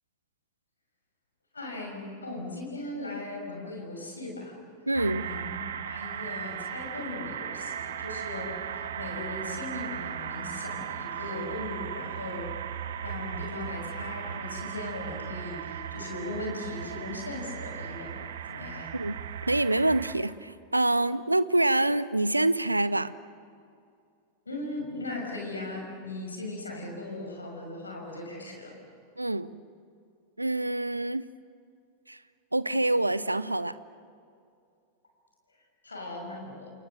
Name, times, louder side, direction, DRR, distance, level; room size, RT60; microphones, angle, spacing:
voice 1, 1.5-4.6 5.1-5.6 5.8-12.5 13.0-19.0 24.4-28.7 35.8-36.7, left 2 dB, 75° left, 1 dB, 6.2 m, -38 dB
sound 1, 4.9-20.1, right 8 dB, 60° right, 1.5 m, -37 dB
voice 2, 4.9-5.3 18.9-19.2 19.5-23.1 29.2-29.5 30.4-31.3 32.1-32.2 32.5-33.8, right 2 dB, 85° right, 17 dB, 0.7 m, -26 dB
29.5 x 29.0 x 6.6 m, 2.4 s
figure-of-eight pair, 90°, 0 cm